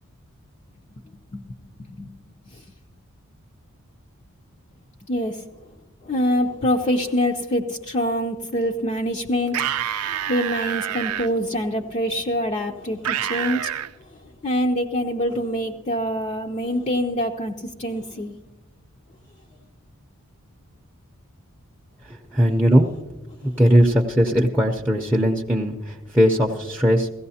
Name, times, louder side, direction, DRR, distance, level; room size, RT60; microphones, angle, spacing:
voice 1, 1.8-2.2 2.5-2.6 5.1-5.4 6.0-9.7 10.0-13.7 14.4-17.5 17.8-18.4 23.4-23.6, equal, 30° left, 1 dB, 0.5 m, -25 dB
sound 1, 9.5-11.3 13.0-13.9, right 10 dB, 80° right, 0.5 m, -27 dB
voice 2, 22.3-22.9 23.6-27.1, equal, 10° right, -3 dB, 0.6 m, -19 dB
17.0 x 15.0 x 2.8 m, 1.0 s
head